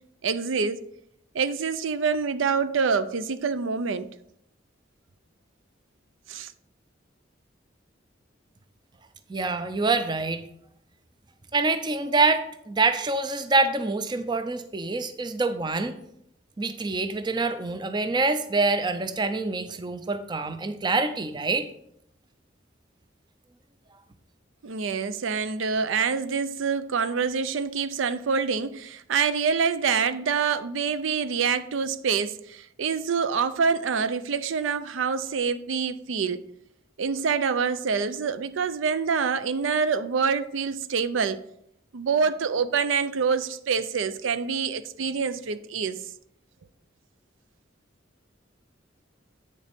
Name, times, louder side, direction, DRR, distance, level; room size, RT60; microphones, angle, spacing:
voice 1, 0.2-0.8 1.3-4.1 6.3-6.5 24.6-36.4 37.0-41.4 41.9-46.0, right 5 dB, 85° right, 0.5 m, -26 dB
voice 2, 9.3-10.4 11.5-16.0 16.6-21.7, right 3 dB, 25° right, 0.4 m, -26 dB
8.2 x 6.5 x 3.5 m
head